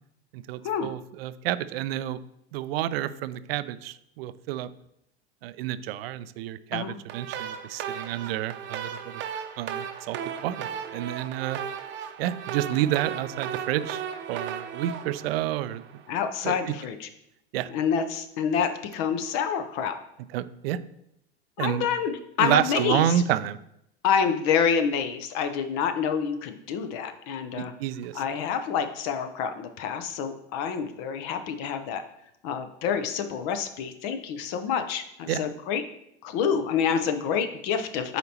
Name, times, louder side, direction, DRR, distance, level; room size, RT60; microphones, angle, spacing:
voice 1, 0.3-2.2 2.5-4.7 5.4-9.2 9.6-11.6 12.2-14.0 14.3-15.8 16.4-16.7 17.5-17.7 20.3-20.8 21.6-21.9 22.4-23.6 27.6-28.2 35.3-35.4, right 12 dB, 60° right, 14 dB, 0.5 m, -29 dB
sound 1, 7.1-16.2, right 8 dB, 35° right, 0.8 m, -36 dB
voice 2, 16.1-17.1 17.7-20.0 21.6-23.1 24.0-27.7 28.1-32.0 32.4-35.8 36.2-38.2, left 7 dB, 50° left, 9 dB, 0.8 m, -27 dB
8.0 x 4.3 x 2.9 m, 0.77 s
hypercardioid pair, 90°, 33 cm